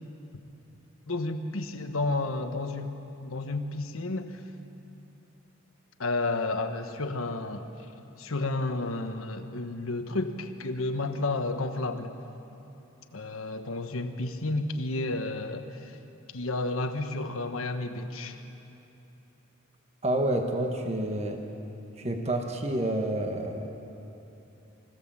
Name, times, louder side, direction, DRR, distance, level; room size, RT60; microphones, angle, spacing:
voice 1, 1.1-3.0 3.2-4.4 6.0-7.7 8.2-12.1 13.1-16.0 16.3-18.4, left 2 dB, 85° left, 6 dB, 1.3 m, -31 dB
voice 2, 20.0-21.4 22.0-23.7, right 1 dB, 30° right, 3 dB, 1.3 m, -29 dB
24.5 x 16.5 x 7.4 m, 2.9 s
head